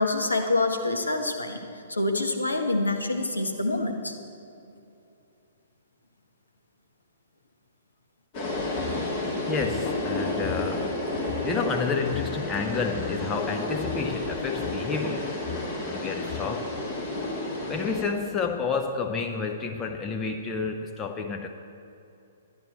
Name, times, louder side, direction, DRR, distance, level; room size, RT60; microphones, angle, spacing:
voice 1, 0.0-4.2, left 2 dB, 75° left, 4 dB, 1.1 m, -26 dB
sound 1, 8.3-18.0, left 2 dB, 35° left, 2.2 m, -31 dB
voice 2, 9.5-11.0 11.2-16.7 17.7-21.6, left 5 dB, 15° left, 4 dB, 0.5 m, -30 dB
12.5 x 10.0 x 4.4 m, 2.7 s
figure-of-eight pair, 115°, 0 cm